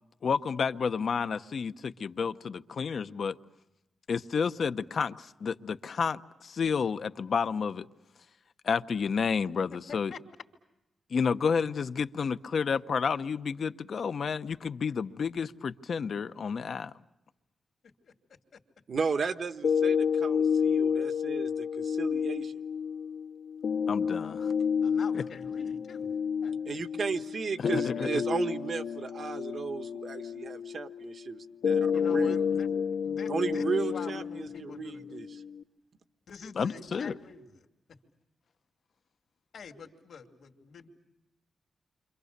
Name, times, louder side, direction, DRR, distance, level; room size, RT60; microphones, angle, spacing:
voice 1, 0.2-3.4 4.1-7.9 8.6-10.1 11.1-16.9 23.9-24.5 25.1-25.2 27.6-28.2 36.6-37.2, left 6 dB, 60° left, 11 dB, 0.8 m, -30 dB
voice 2, 9.7-10.2 17.8-18.1 18.5-18.6 24.8-26.1 26.4-26.8 31.9-32.7 33.0-35.2 36.3-37.7 39.5-40.9, left 5 dB, 75° left, 3 dB, 2.7 m, -46 dB
voice 3, 18.9-22.5 26.7-32.4 33.3-35.3, right 5 dB, 55° right, 8 dB, 1.3 m, -34 dB
sound 1, 19.6-35.6, left 7 dB, 90° left, 1.9 m, -30 dB
29.5 x 26.0 x 6.7 m, 0.92 s
wide cardioid pair, 115°, 0 cm